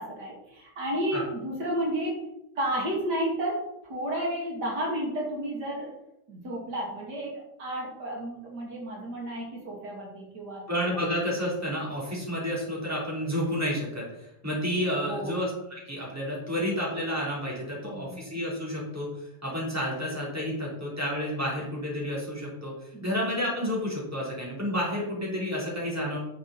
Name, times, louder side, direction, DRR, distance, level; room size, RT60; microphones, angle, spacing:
voice 1, 0.0-2.2 2.5-5.9 6.3-10.6 15.1-15.4 17.8-18.2 22.9-23.1, right 1 dB, 75° right, -3 dB, 3.1 m, -32 dB
voice 2, 10.7-19.1 19.4-22.7 23.0-26.2, equal, 10° right, -5 dB, 3.9 m, -30 dB
9.8 x 7.5 x 4.3 m, 0.84 s
omnidirectional pair, 1.8 m